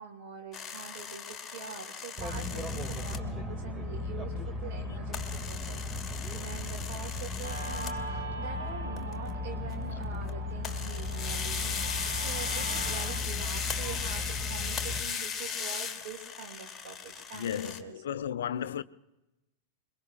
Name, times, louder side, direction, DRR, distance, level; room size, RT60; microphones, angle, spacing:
voice 1, 0.0-18.0, right 6 dB, 50° right, 2.1 m, -45 dB
sound 1, 0.5-3.2 5.1-8.0 9.0-9.4 9.7-10.3 10.6-17.8, left 6 dB, 20° left, 1.3 m, -37 dB
sound 2, 2.2-15.0, left 3 dB, 10° right, 2.0 m, -36 dB
Guitar, 7.4-14.4, right 3 dB, 70° right, 5.0 m, -42 dB
voice 2, 17.3-18.8, left 9 dB, 60° left, 0.5 m, -34 dB
27.0 x 22.5 x 2.4 m
figure-of-eight pair, 90°, 0 cm